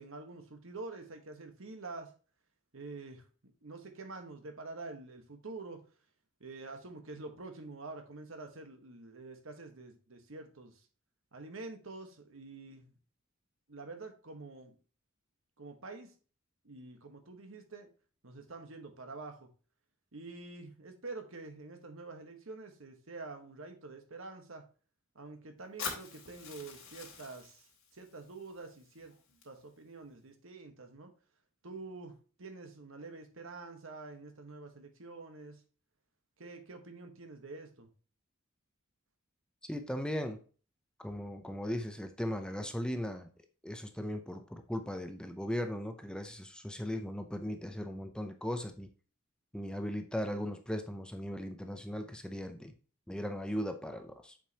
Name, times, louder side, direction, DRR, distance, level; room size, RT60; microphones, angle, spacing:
voice 1, 0.0-2.1 2.7-3.3 3.6-5.8 6.4-10.8 11.3-13.0 13.7-14.7 15.6-16.1 16.6-17.9 18.2-19.5 20.1-24.6 25.1-29.1 29.4-31.1 31.6-35.6 36.4-37.9, right 3 dB, 70° right, 6 dB, 1.3 m, -47 dB
Fire, 25.8-29.8, left 5 dB, 80° left, 2.3 m, -46 dB
voice 2, 39.6-40.4 41.0-43.3 43.6-48.9 49.5-52.7 53.1-54.4, equal, 5° left, 6 dB, 0.6 m, -38 dB
7.6 x 5.1 x 2.8 m, 0.38 s
head